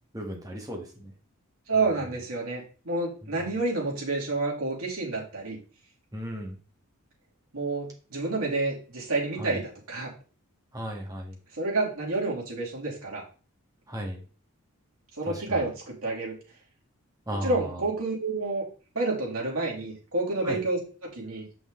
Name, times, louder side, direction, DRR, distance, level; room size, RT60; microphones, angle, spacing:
voice 1, 0.1-1.1 6.1-6.6 9.4-9.6 10.7-11.4 13.9-14.2 15.3-15.7 17.3-17.8 20.4-20.6, equal, 15° right, 1 dB, 1.8 m, -35 dB
voice 2, 1.7-5.6 7.5-10.1 11.5-13.2 15.2-16.3 17.3-18.6 18.9-21.6, right 3 dB, 85° right, -2 dB, 3.2 m, -29 dB
6.8 x 6.0 x 3.8 m, 0.36 s
head